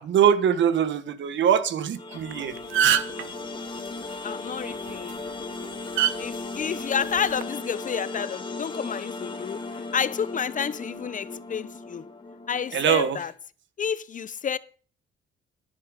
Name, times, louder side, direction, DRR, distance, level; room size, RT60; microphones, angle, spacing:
voice 1, 0.0-2.5 12.7-13.2, right 8 dB, 70° right, 1.3 m, -22 dB
sound 1, 2.0-13.0, left 3 dB, 25° left, 2.1 m, -36 dB
sound 2, 2.2-2.3 2.6-3.2 4.9-5.1 6.0-6.1 7.2-7.4, right 9 dB, 85° right, 0.9 m, -21 dB
voice 2, 4.2-5.2 6.2-12.0 12.5-13.3 13.8-14.6, left 7 dB, 40° left, 0.7 m, -30 dB
11.0 x 9.6 x 5.2 m
cardioid pair, 90°, 20 cm